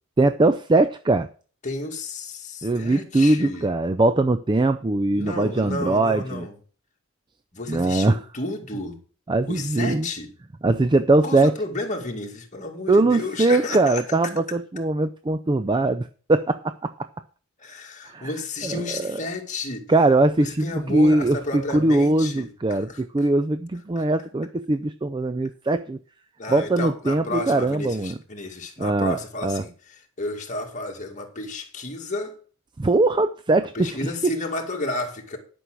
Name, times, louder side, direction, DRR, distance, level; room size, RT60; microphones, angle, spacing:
voice 1, 0.2-1.3 2.6-6.5 7.7-8.2 9.3-10.1 10.6-11.5 12.9-16.9 18.0-18.3 18.6-19.2 19.9-21.4 21.7-26.0 26.5-28.2 28.8-29.2 29.4-29.6 32.8-34.3, right 2 dB, 20° right, 0.4 m, -21 dB
voice 2, 1.6-3.7 5.1-6.6 7.5-9.0 9.5-10.3 11.2-14.0 17.6-19.9 20.4-23.0 24.0-24.1 26.4-32.3 33.7-35.4, left 2 dB, 35° left, 2.2 m, -32 dB
11.5 x 6.2 x 6.2 m
head